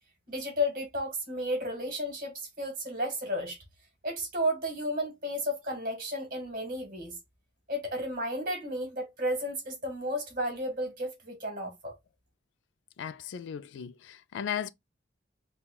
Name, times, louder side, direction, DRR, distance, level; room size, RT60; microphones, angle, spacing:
voice 1, 0.3-3.6 4.0-7.1 7.7-11.9, equal, 50° right, 1.5 m, -33 dB
voice 2, 13.0-14.7, left 8 dB, 85° left, 0.3 m, -36 dB
5.5 x 2.2 x 2.3 m
head